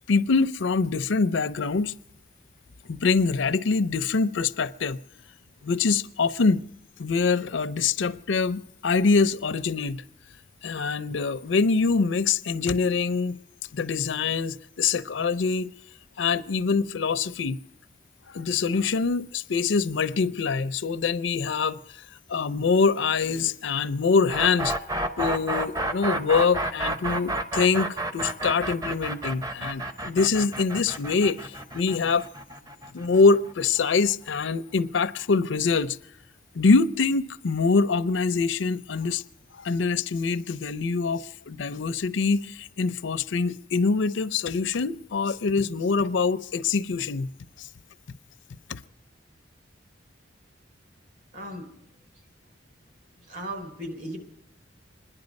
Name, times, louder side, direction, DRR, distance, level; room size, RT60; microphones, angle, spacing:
voice 1, 0.1-1.9 2.9-5.0 5.6-6.6 7.0-10.0 10.6-13.4 13.7-15.7 16.2-17.6 18.3-21.8 22.3-24.7 25.2-32.3 32.9-36.0 36.5-39.2 39.5-47.3 47.6-47.7 48.7-48.8, left 4 dB, 75° left, 0.5 m, -24 dB
sound 1, 24.3-34.1, right 2 dB, 20° right, 0.7 m, -30 dB
voice 2, 51.3-51.7 53.3-54.2, right 1 dB, 45° right, 3.7 m, -36 dB
25.5 x 10.5 x 5.2 m
head